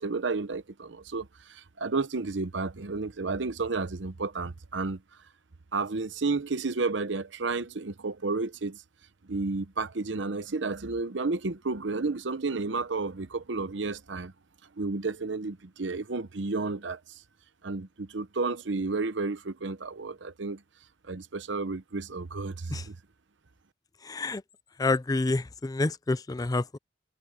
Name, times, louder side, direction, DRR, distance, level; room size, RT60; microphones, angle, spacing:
voice 1, 0.0-5.0 5.7-8.8 9.3-14.3 14.8-17.0 17.6-20.6 21.1-23.0, right 3 dB, 70° right, 0.9 m, -31 dB
voice 2, 24.0-24.4 24.8-26.8, left 2 dB, 20° left, 0.4 m, -28 dB
head